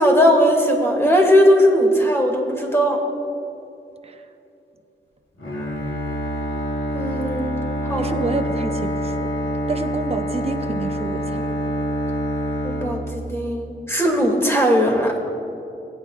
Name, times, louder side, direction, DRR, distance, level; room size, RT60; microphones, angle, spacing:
voice 1, 0.0-3.0 6.9-7.5 7.8-8.1 12.6-15.3, equal, 10° left, 0 dB, 2.5 m, -18 dB
Bowed string instrument, 5.4-13.6, equal, 85° left, 2.1 m, -26 dB
voice 2, 8.0-9.3 9.7-11.5, right 3 dB, 30° right, 6 dB, 0.8 m, -29 dB
16.0 x 9.3 x 2.5 m, 2.8 s
cardioid pair, 45°, 20 cm